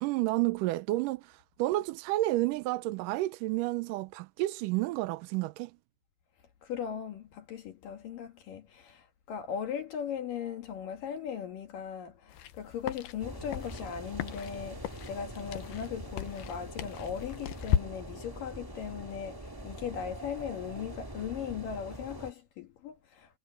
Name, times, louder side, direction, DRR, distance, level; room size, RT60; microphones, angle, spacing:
voice 1, 0.0-5.7, right 18 dB, 85° right, 1.9 m, -30 dB
voice 2, 6.6-23.4, left 8 dB, 65° left, 3.1 m, -38 dB
sound 1, 12.3-17.8, left 11 dB, 80° left, 2.9 m, -36 dB
sound 2, 13.2-22.3, right 1 dB, 10° right, 1.1 m, -44 dB
omnidirectional pair, 4.5 m